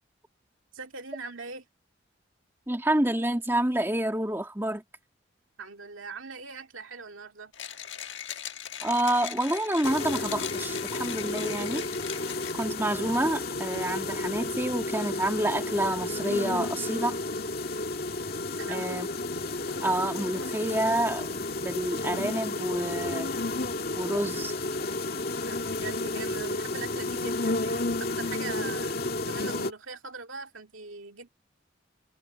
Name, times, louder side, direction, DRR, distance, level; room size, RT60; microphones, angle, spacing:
voice 1, 0.7-1.7 5.6-7.5 18.6-18.9 25.5-31.3, right 4 dB, 90° right, 2.5 m, -41 dB
voice 2, 2.7-4.8 8.8-11.9 12.2-17.2 18.7-19.1 19.8-23.3 24.0-24.5, right 1 dB, 10° right, 2.2 m, -28 dB
Mechanisms, 7.5-12.8, left 10 dB, 70° left, 1.6 m, -39 dB
sound 1, 9.8-29.7, left 2 dB, 50° left, 2.2 m, -32 dB
head